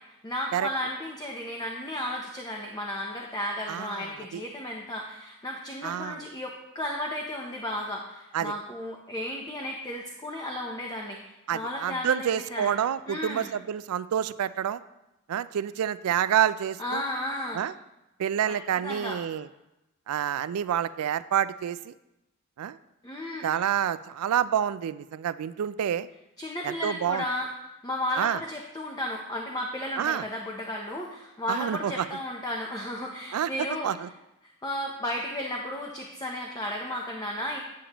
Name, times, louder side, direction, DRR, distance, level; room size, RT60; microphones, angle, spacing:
voice 1, 0.2-12.8 13.1-13.5 16.8-17.6 18.5-18.6 18.8-19.2 23.0-23.6 26.4-27.5 27.8-34.1 34.6-37.6, left 1 dB, 15° left, 0 dB, 0.7 m, -34 dB
voice 2, 3.7-4.4 5.8-6.2 8.3-8.5 11.5-14.8 15.3-17.0 17.5-17.7 18.2-19.5 20.1-21.9 22.6-22.8 23.4-26.1 26.6-27.2 28.2-28.4 30.0-30.2 31.5-32.1 33.3-33.5 33.8-34.1, right 9 dB, 80° right, 16 dB, 0.3 m, -28 dB
8.6 x 8.5 x 3.0 m, 0.95 s
head